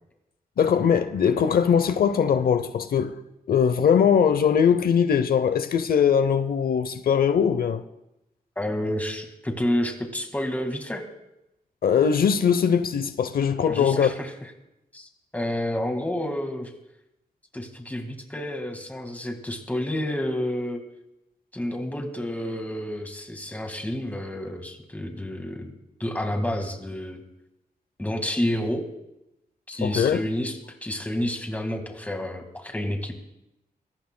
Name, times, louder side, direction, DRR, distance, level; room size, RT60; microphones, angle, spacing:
voice 1, 0.6-3.1 3.5-7.8 11.8-14.1 29.8-30.2, left 7 dB, 75° left, 0.7 m, -21 dB
voice 2, 8.6-11.0 13.7-14.3 14.9-16.7 17.5-20.8 21.5-25.7 26.0-27.2 28.0-28.9 29.7-33.1, left 1 dB, 10° left, 1.8 m, -29 dB
23.5 x 18.0 x 2.2 m
wide cardioid pair, 135°, 16 cm